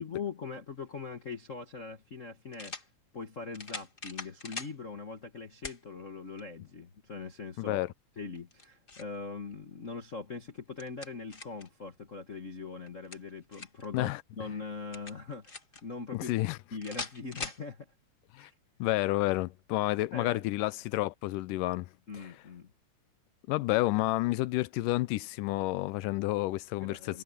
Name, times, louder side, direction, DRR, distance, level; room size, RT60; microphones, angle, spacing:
voice 1, 0.0-2.7 3.1-7.9 8.2-15.6 15.8-16.3 16.7-17.9 18.4-18.5 20.1-20.4 22.1-22.7 26.8-27.2, left 4 dB, 55° left, 0.8 m, -41 dB
sound 1, 1.3-1.4 2.5-2.9 3.5-4.8 5.6-5.8 6.4-6.5 8.3-9.2 10.5-11.7 12.9-13.9 14.9-15.8 16.8-17.6, left 3 dB, 25° left, 1.1 m, -42 dB
voice 2, 7.6-7.9 13.9-14.2 16.1-16.6 18.3-18.5 18.8-21.9 23.5-27.2, left 19 dB, 90° left, 2.3 m, -30 dB
omnidirectional pair, 3.7 m